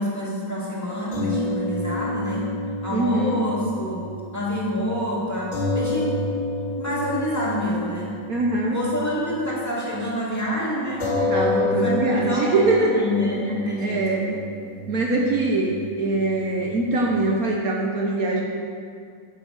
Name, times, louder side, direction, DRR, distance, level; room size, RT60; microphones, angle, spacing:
voice 1, 0.0-2.5 2.8-4.1 4.3-6.3 6.8-8.2 8.7-11.1 11.4-14.2, equal, 10° left, -7 dB, 2.2 m, -27 dB
sound 1, 1.1-9.6 9.9-10.1 11.0-17.5, left 3 dB, 60° left, 3.5 m, -30 dB
voice 2, 2.9-3.4 8.3-8.8 11.3-13.0 13.8-14.4 14.9-18.4, right 2 dB, 60° right, -1 dB, 1.3 m, -23 dB
10.5 x 6.1 x 6.6 m, 2.2 s
omnidirectional pair, 1.8 m